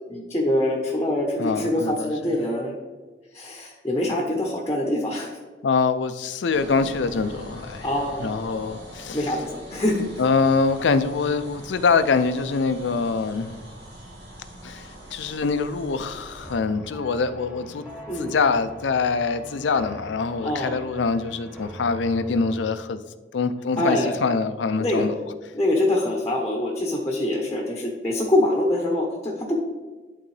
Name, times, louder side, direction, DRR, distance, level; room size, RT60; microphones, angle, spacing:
voice 1, 0.1-2.7 3.3-5.3 7.8-8.3 9.1-10.3 18.1-18.3 20.4-20.8 23.8-24.1 24.8-25.1 25.5-29.6, left 1 dB, 15° left, 0.8 m, -24 dB
voice 2, 1.4-2.1 5.6-7.9 8.2-9.4 9.7-9.8 10.2-13.6 14.6-17.9 18.2-23.0 23.3-25.1, left 4 dB, 90° left, 0.5 m, -24 dB
sound 1, 6.5-16.6, right 1 dB, 75° right, 1.7 m, -43 dB
sound 2, 16.4-22.7, equal, 10° right, 1.3 m, -42 dB
11.0 x 3.8 x 3.2 m
head